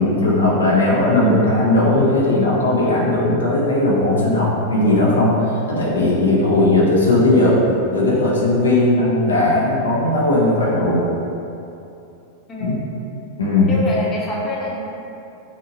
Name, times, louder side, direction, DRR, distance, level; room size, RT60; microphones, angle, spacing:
voice 1, 0.0-7.6 7.9-11.1 12.6-12.8 13.4-13.7, left 2 dB, 80° left, -5 dB, 0.5 m, -17 dB
voice 2, 13.7-14.7, left 2 dB, 25° left, -6 dB, 0.7 m, -25 dB
2.6 x 2.5 x 2.7 m, 2.8 s
hypercardioid pair, 95°, 0 cm